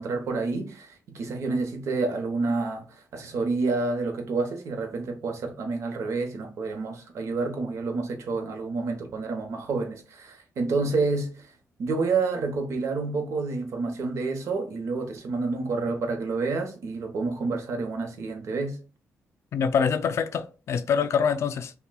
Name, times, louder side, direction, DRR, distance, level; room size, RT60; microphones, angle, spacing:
voice 1, 0.0-2.9 3.1-11.5 11.8-18.8, right 3 dB, 65° right, 0.9 m, -29 dB
voice 2, 19.5-21.7, left 6 dB, 60° left, 0.3 m, -25 dB
5.6 x 2.2 x 2.2 m
cardioid pair, 130°, 5 cm